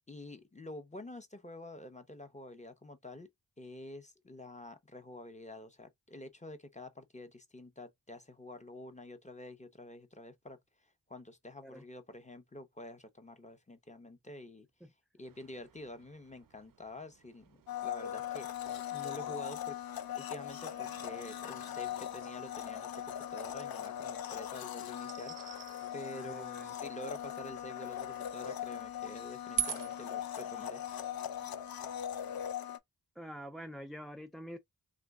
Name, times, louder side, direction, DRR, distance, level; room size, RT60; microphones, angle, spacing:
voice 1, 0.1-3.3 3.6-14.7 15.2-19.8 20.1-25.6 25.9-31.0, left 1 dB, 20° left, 0.8 m, -48 dB
sound 1, 15.2-32.5, right 10 dB, 60° right, 0.5 m, -47 dB
Domestic sounds home sounds, 17.7-32.8, left 10 dB, 65° left, 0.5 m, -40 dB
voice 2, 26.1-26.7 33.2-34.6, equal, ahead, 0.4 m, -46 dB
3.1 x 2.4 x 3.5 m
wide cardioid pair, 50°, 38 cm